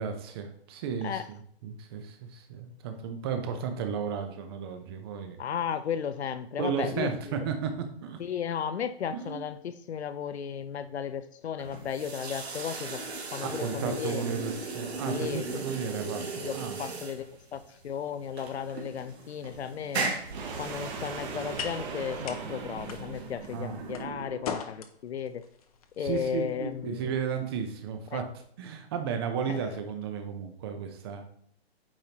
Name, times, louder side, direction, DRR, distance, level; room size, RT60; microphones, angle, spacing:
voice 1, 0.0-5.4 6.6-8.2 9.1-9.5 13.4-16.8 23.5-23.8 26.0-28.3 28.6-31.2, right 6 dB, 25° right, 6 dB, 0.7 m, -34 dB
voice 2, 5.4-7.3 8.2-13.0 13.3-14.2 15.1-15.6 16.4-20.1 20.6-25.4 26.0-27.1 28.1-28.2 29.5-29.6, left 8 dB, 90° left, 12 dB, 0.6 m, -35 dB
sound 1, 11.6-24.0, right 3 dB, 85° right, 1.9 m, -38 dB
sound 2, 20.3-24.6, right 4 dB, 45° right, 1.7 m, -39 dB
sound 3, 20.4-28.4, left 7 dB, 35° left, 0.6 m, -44 dB
8.7 x 4.4 x 2.9 m, 0.64 s
hypercardioid pair, 155°, 32 cm